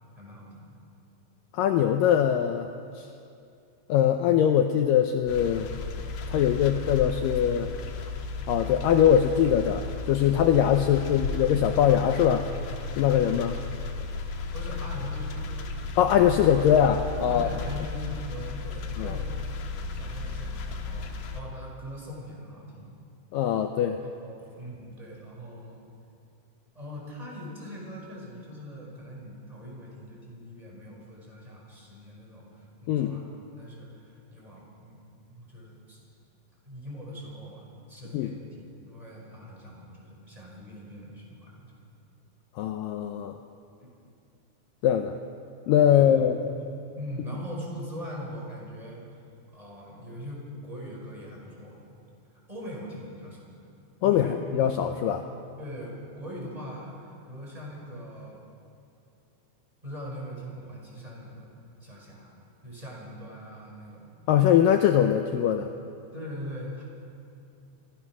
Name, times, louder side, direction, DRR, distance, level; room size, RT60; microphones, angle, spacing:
voice 1, 0.2-0.8 10.8-11.1 14.5-15.7 17.3-19.3 19.9-22.9 24.0-25.8 26.7-33.2 33.6-35.0 35.3-36.0 36.6-41.8 43.8-43.9 45.9-46.3 46.5-49.2 49.5-51.8 52.5-53.5 54.0-54.4 55.0-55.2 55.6-58.4 59.8-61.5 61.8-62.4 62.6-64.1 66.1-66.8, equal, 10° right, -3 dB, 5.1 m, -41 dB
voice 2, 1.5-2.7 3.0-3.1 3.9-5.7 6.3-7.8 8.5-12.5 13.0-13.6 16.0-17.5 19.0-19.1 23.3-24.0 32.9-33.2 38.1-38.3 42.6-43.3 44.8-45.2 45.7-46.4 54.0-54.3 54.5-55.3 64.3-65.7, left 9 dB, 85° left, 6 dB, 2.0 m, -22 dB
sound 1, 5.3-21.4, left 4 dB, 60° left, 2.5 m, -34 dB
26.0 x 17.0 x 6.1 m, 2.5 s
omnidirectional pair, 4.8 m